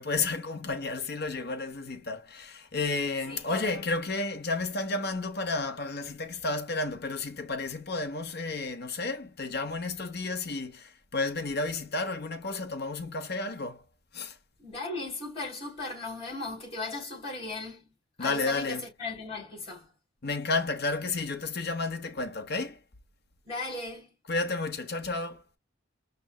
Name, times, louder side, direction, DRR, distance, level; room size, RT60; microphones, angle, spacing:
voice 1, 0.0-13.8 14.1-14.4 18.2-18.8 20.2-22.8 24.3-25.4, left 3 dB, 55° left, 1.1 m, -32 dB
voice 2, 3.1-3.9 14.6-17.9 18.2-19.9 23.4-24.1, left 3 dB, 30° left, 3.6 m, -37 dB
5.3 x 3.3 x 2.3 m
head